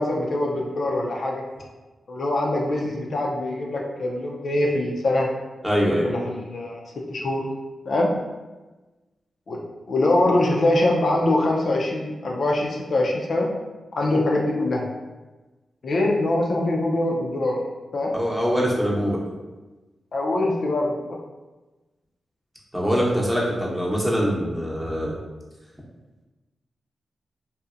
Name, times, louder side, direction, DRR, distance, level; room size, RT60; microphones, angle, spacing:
voice 1, 0.0-1.4 2.1-5.3 6.0-6.8 7.1-7.4 7.9-8.1 9.5-9.6 9.9-13.5 14.0-14.8 15.8-17.6 17.9-18.1 20.1-21.2, left 2 dB, 65° left, -1 dB, 0.4 m, -23 dB
voice 2, 5.6-6.1 18.1-19.2 22.7-25.2, equal, 5° right, -4 dB, 0.8 m, -23 dB
2.7 x 2.0 x 2.4 m, 1.2 s
supercardioid pair, 45°, 0 cm